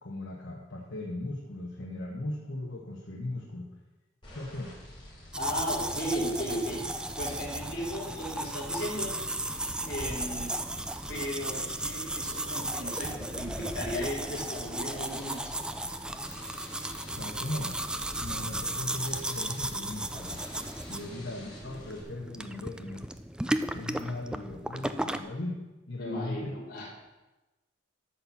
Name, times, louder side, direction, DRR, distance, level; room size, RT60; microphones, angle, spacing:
voice 1, 0.0-3.7 4.3-4.7 17.1-17.7 18.2-20.4 20.9-23.0 23.7-25.6 25.9-26.5, left 1 dB, 65° left, -1 dB, 1.2 m, -38 dB
sound 1, 4.2-22.0, left 1 dB, 25° left, 3.3 m, -50 dB
voice 2, 5.3-6.8 7.2-9.1 9.9-10.5 11.1-15.7 26.0-26.9, equal, 50° left, -5 dB, 3.2 m, -35 dB
sound 2, 5.3-25.2, right 1 dB, 5° right, 0.3 m, -35 dB
12.5 x 4.3 x 7.2 m, 1.1 s
head